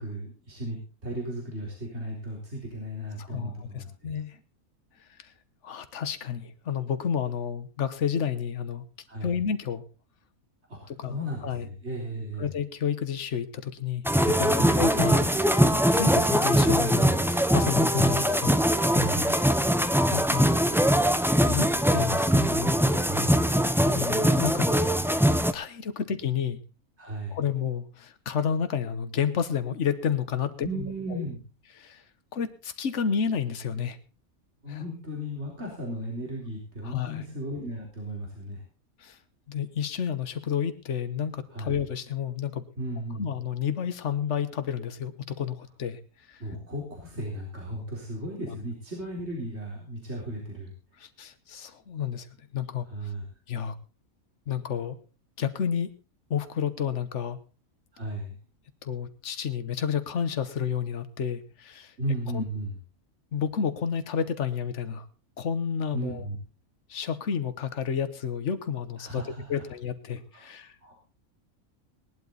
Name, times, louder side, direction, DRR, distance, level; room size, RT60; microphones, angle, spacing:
voice 1, 0.0-4.1 9.1-9.3 10.7-12.5 14.4-14.8 18.9-19.3 23.1-23.5 27.0-27.4 30.6-31.4 34.6-38.6 41.5-41.8 42.8-43.3 46.4-50.7 52.9-53.2 57.9-58.3 62.0-62.8 65.9-66.4 69.0-69.6 70.3-70.6 70.8-70.9, right 1 dB, 50° right, -2 dB, 4.3 m, -35 dB
voice 2, 3.2-4.4 5.2-5.3 5.6-8.9 9.2-9.8 10.9-11.2 11.4-11.7 12.4-15.3 15.9-18.6 19.3-19.5 20.1-20.5 21.5-22.8 23.9-24.7 25.5-26.6 27.3-30.7 31.1-31.2 31.8-32.0 32.3-34.0 34.7-34.8 36.8-37.2 39.0-39.2 39.5-42.6 43.2-46.0 46.3-46.4 48.5-48.6 51.0-52.3 52.5-52.9 53.5-53.7 54.5-55.0 55.4-55.9 56.3-57.4 58.8-61.9 62.3-62.4 63.3-65.1 65.4-66.3 66.9-69.2 69.5-70.7, left 7 dB, 60° left, 11 dB, 1.4 m, -30 dB
sound 1, 14.0-25.5, equal, 5° right, 0.5 m, -22 dB
18.5 x 11.5 x 4.0 m, 0.33 s
omnidirectional pair, 1.5 m